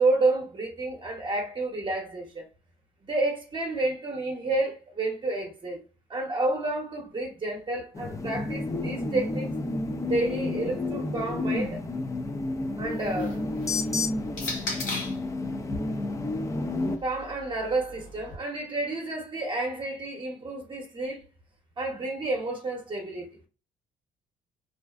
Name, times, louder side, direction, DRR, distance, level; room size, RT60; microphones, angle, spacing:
voice 1, 0.0-2.4 3.0-5.8 6.1-9.5 10.1-11.8 12.8-13.4 17.0-21.2 21.8-23.5, right 2 dB, 35° right, 0.8 m, -30 dB
sound 1, 7.9-17.0, left 2 dB, 20° left, 0.4 m, -30 dB
sound 2, 12.9-15.3 16.2-18.3, left 2 dB, 70° left, 0.9 m, -38 dB
2.5 x 2.1 x 2.3 m
cardioid pair, 80°, 14 cm